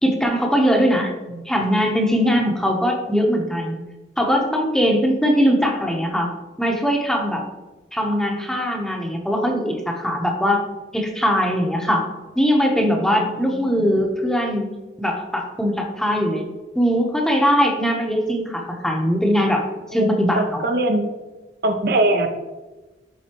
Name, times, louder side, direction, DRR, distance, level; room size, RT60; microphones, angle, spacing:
voice 1, 0.0-1.1 1.5-3.8 4.2-6.3 6.6-7.4 7.9-10.6 10.9-12.1 12.4-14.7 15.0-16.4 16.7-20.6, equal, 5° left, 1 dB, 0.9 m, -20 dB
voice 2, 2.2-2.5 13.2-13.7 19.9-20.1 20.4-21.1 21.6-22.4, right 2 dB, 55° right, 5 dB, 0.6 m, -22 dB
11.0 x 4.0 x 3.0 m, 1.1 s
head